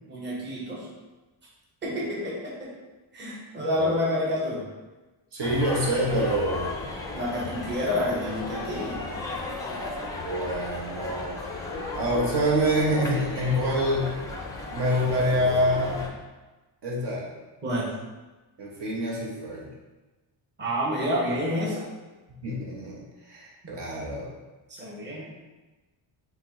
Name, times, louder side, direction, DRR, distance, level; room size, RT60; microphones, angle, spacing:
voice 1, 0.1-0.9 1.8-2.7 3.1-4.6 7.1-9.0 17.6-17.9 20.6-21.8 24.7-25.2, left 1 dB, 20° right, -5 dB, 0.9 m, -28 dB
voice 2, 5.3-6.9 10.0-11.4 11.9-14.1 14.7-16.1 16.8-17.3 18.6-19.7 22.4-24.3, equal, 60° right, -4 dB, 1.0 m, -26 dB
sound 1, 5.4-16.1, left 3 dB, 10° left, 0.4 m, -35 dB
5.8 x 2.2 x 3.7 m, 1.2 s
cardioid pair, 150°, 48 cm